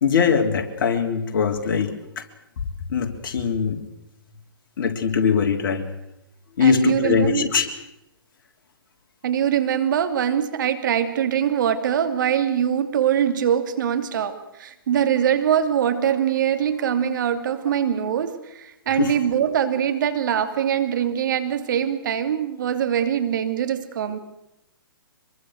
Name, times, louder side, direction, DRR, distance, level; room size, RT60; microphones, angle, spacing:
voice 1, 0.0-2.2 2.9-3.8 4.8-5.9 6.6-7.7 19.0-19.1, left 6 dB, 60° left, 4 dB, 3.5 m, -21 dB
voice 2, 6.6-7.5 9.2-24.2, right 9 dB, 55° right, 9 dB, 2.8 m, -23 dB
25.0 x 22.5 x 6.5 m, 0.86 s
hypercardioid pair, 130°, 12 cm